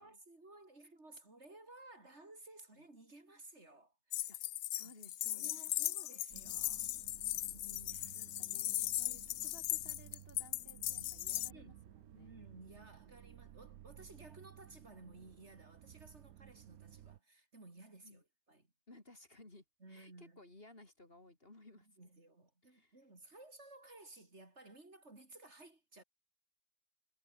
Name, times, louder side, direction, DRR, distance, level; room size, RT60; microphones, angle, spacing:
voice 1, 0.0-4.4 4.8-6.9 7.9-8.3 9.0-9.2 10.7-11.1 11.5-11.9 12.1-18.7 19.8-20.5 22.0-26.0, right 2 dB, 40° right, 4.2 m, -57 dB
sound 1, 4.1-11.5, left 14 dB, 70° left, 0.7 m, -38 dB
voice 2, 4.3-5.8 7.5-12.4 18.0-18.2 18.9-22.1 22.6-23.0, left 2 dB, 35° left, 3.7 m, -60 dB
sound 2, 6.3-17.2, right 12 dB, 65° right, 1.1 m, -57 dB
omnidirectional pair, 1.7 m